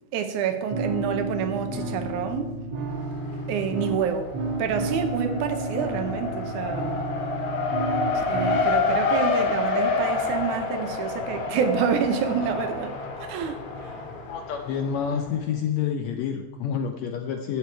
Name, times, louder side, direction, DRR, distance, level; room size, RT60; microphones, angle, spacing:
voice 1, 0.1-2.6 3.4-4.3 4.6-7.0 8.1-12.9 13.2-13.9, right 7 dB, 75° right, 2.1 m, -28 dB
sound 1, 0.7-8.7, right 2 dB, 55° right, 2.8 m, -31 dB
Race car auto racing, 2.9-3.6 3.9-15.3, left 4 dB, 60° left, 2.6 m, -28 dB
voice 2, 14.3-17.6, left 7 dB, 75° left, 1.6 m, -28 dB
11.5 x 8.5 x 4.6 m
omnidirectional pair, 3.8 m